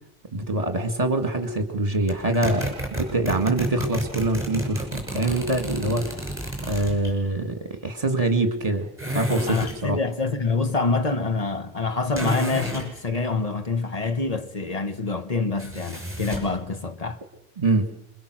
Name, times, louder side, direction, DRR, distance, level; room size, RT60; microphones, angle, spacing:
voice 1, 0.3-6.2 6.7-10.0 17.6-17.9, right 2 dB, 30° right, 2.2 m, -24 dB
sound 1, 2.1-7.1 9.0-9.8 12.1-12.9 15.6-16.6, right 1 dB, 10° right, 6.0 m, -31 dB
voice 2, 9.5-17.2, left 3 dB, 30° left, 1.3 m, -26 dB
26.0 x 23.0 x 6.4 m
omnidirectional pair, 1.3 m